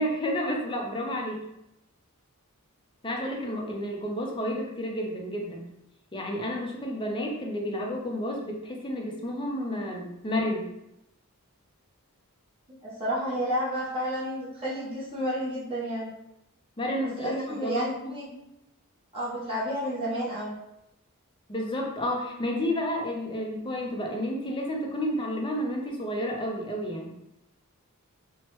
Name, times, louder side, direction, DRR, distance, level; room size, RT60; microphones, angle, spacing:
voice 1, 0.0-1.4 3.0-5.6 6.1-10.7 16.8-18.3 21.5-27.1, equal, 20° left, 0 dB, 0.5 m, -31 dB
voice 2, 12.8-16.1 17.2-18.2 19.1-20.5, equal, 25° right, -9 dB, 0.9 m, -31 dB
3.0 x 2.1 x 3.0 m, 0.85 s
head